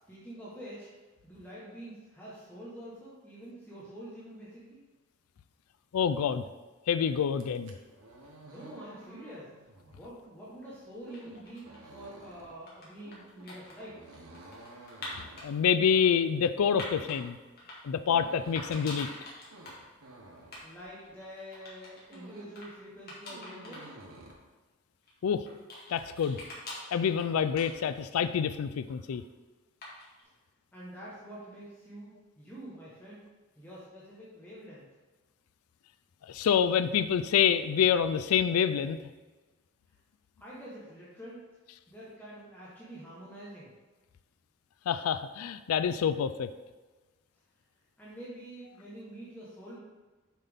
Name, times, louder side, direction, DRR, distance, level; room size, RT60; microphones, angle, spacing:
voice 1, 0.1-0.9 1.2-4.8 8.4-9.5 9.9-14.0 20.6-23.9 30.7-33.3 33.6-34.9 40.4-41.4 41.9-43.7 48.0-49.8, right 1 dB, 10° left, -8 dB, 1.2 m, -46 dB
voice 2, 5.9-6.4 6.9-7.7 15.1-17.4 17.8-19.1 25.2-25.5 25.9-26.4 26.9-29.2 36.2-39.0 44.9-46.5, left 7 dB, 90° left, 12 dB, 0.4 m, -27 dB
sound 1, 7.3-21.3 21.7-22.7 22.9-24.3, right 1 dB, 80° right, 1.0 m, -53 dB
sound 2, 10.9-11.9 12.5-15.5 16.0-17.2 17.6-18.2 18.6-19.8 20.1-20.2 20.4-20.6 20.9-22.2 22.6-22.7 23.1-23.9 24.3-24.4 25.0-28.2 28.5-29.1 29.8-30.2, left 2 dB, 45° left, 2.0 m, -45 dB
7.3 x 5.7 x 3.6 m, 1.2 s
head